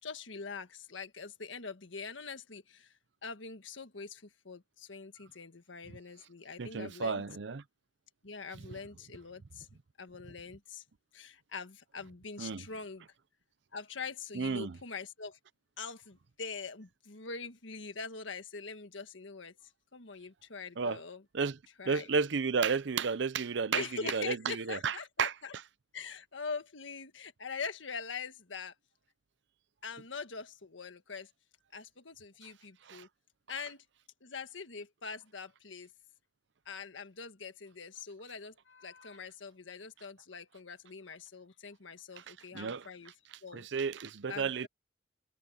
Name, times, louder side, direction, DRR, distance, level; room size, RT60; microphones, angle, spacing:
voice 1, 0.0-7.2 8.2-9.7 10.0-10.8 11.1-13.0 13.7-15.4 15.8-21.2 21.8-22.1 23.7-25.5 25.9-28.7 29.8-31.3 31.7-33.1 33.5-33.8 34.2-35.9 36.6-43.1 43.4-43.7 44.3-44.7, left 5 dB, 85° left, 1.6 m, -43 dB
voice 2, 6.6-7.6 12.4-12.7 14.3-14.8 20.8-21.0 21.3-21.6 21.8-25.3 32.8-33.1 42.2-42.3 42.5-42.9 43.5-44.7, right 5 dB, 65° right, 0.6 m, -32 dB
head